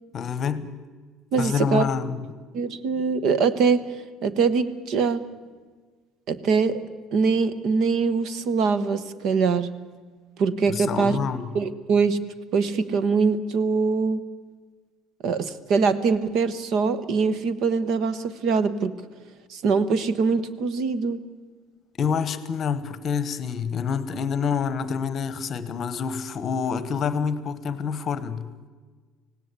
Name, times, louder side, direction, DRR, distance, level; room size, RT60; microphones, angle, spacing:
voice 1, 0.1-0.7 1.4-2.2 10.7-11.5 22.0-28.5, left 6 dB, 30° left, 1.1 m, -27 dB
voice 2, 1.3-1.9 2.5-3.9 4.2-5.2 6.3-6.8 7.1-9.7 10.4-11.2 11.5-12.2 12.5-14.2 15.2-19.0 19.5-21.2, right 5 dB, 45° right, 1.1 m, -23 dB
25.5 x 18.0 x 8.3 m
cardioid pair, 180°, 0 cm